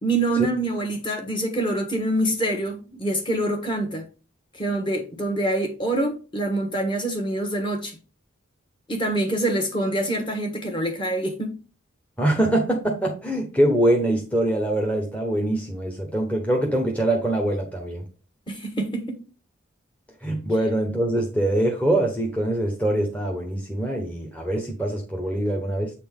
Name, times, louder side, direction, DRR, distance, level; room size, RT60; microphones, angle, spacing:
voice 1, 0.0-4.0 4.6-8.0 8.9-11.6 18.5-19.2, right 1 dB, 25° left, 1.4 m, -25 dB
voice 2, 12.2-18.0 20.2-25.9, right 1 dB, 5° left, 1.0 m, -23 dB
8.0 x 4.2 x 3.6 m
head